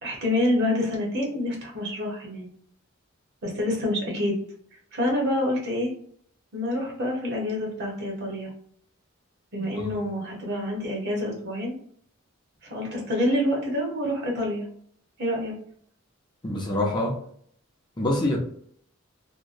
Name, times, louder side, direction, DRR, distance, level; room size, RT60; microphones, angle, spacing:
voice 1, 0.0-2.5 3.4-4.4 4.9-5.9 6.5-8.5 9.5-11.7 12.6-14.6 15.2-15.5, left 1 dB, 55° right, -1 dB, 1.0 m, -27 dB
voice 2, 9.6-9.9 16.4-17.2 18.0-18.4, left 1 dB, 20° left, -2 dB, 0.6 m, -26 dB
2.9 x 2.2 x 2.5 m, 0.62 s
head